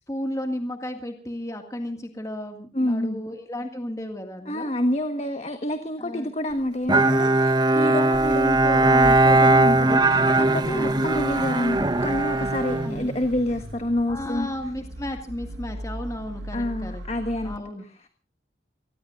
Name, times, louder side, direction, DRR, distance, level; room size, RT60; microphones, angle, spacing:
voice 1, 0.1-4.7 6.0-6.3 10.7-11.0 12.8-13.1 14.1-17.0 17.4-17.8, left 1 dB, 20° left, 4 dB, 1.9 m, -34 dB
voice 2, 2.7-3.2 4.4-14.5 16.5-17.6, left 1 dB, 35° left, 7 dB, 1.3 m, -28 dB
Bowed string instrument, 6.9-13.6, right 2 dB, 25° right, 1.0 m, -20 dB
Car / Idling / Accelerating revving vroom, 8.1-17.6, right 1 dB, 75° right, 1.4 m, -37 dB
28.5 x 19.0 x 2.5 m, 0.37 s
head